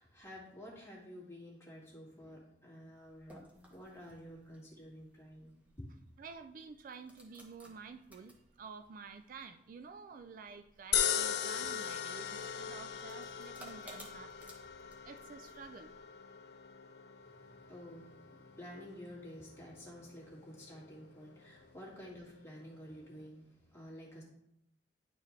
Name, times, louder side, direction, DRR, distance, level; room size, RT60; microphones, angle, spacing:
voice 1, 0.0-3.4 3.7-5.9 17.2-24.2, equal, 15° left, -5 dB, 2.3 m, -51 dB
sound 1, 2.9-16.0, equal, 10° right, 1.3 m, -60 dB
voice 2, 6.2-14.3 15.0-15.9, right 5 dB, 50° right, 9 dB, 0.4 m, -50 dB
sound 2, 10.9-23.3, left 9 dB, 65° left, 0.5 m, -40 dB
10.5 x 4.7 x 3.3 m, 0.77 s
head